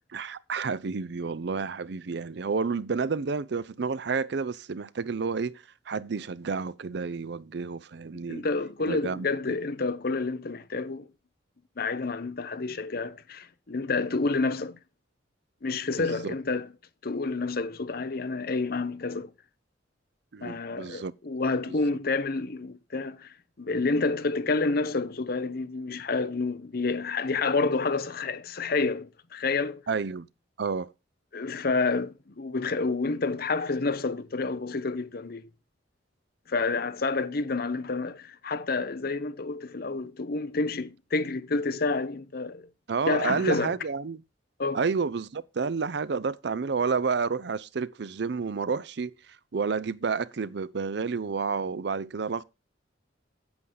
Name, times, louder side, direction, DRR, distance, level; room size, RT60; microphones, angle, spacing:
voice 1, 0.1-8.5 8.9-9.3 16.0-16.3 20.3-21.1 21.7-21.8 29.9-30.3 30.6-30.9 42.9-44.2 44.7-49.1 49.5-52.4, right 5 dB, 65° right, 0.5 m, -30 dB
voice 2, 8.3-11.1 11.8-14.8 15.6-16.7 17.0-19.3 20.4-29.8 31.3-35.4 36.5-42.7 43.1-43.7 44.6-44.8, left 3 dB, 55° left, 0.8 m, -29 dB
9.5 x 7.9 x 3.9 m
head